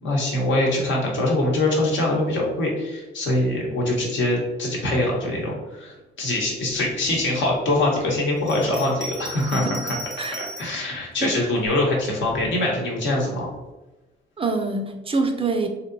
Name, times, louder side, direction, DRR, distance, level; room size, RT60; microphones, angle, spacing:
voice 1, 0.0-9.9 10.3-13.5, left 1 dB, 70° left, -2 dB, 1.0 m, -23 dB
Bell, 8.4-10.8 11.6-12.5, right 1 dB, 15° left, 0.6 m, -36 dB
voice 2, 14.4-15.7, right 3 dB, 30° right, 5 dB, 0.4 m, -24 dB
3.0 x 2.8 x 2.6 m, 1.1 s
cardioid pair, 90°, 20 cm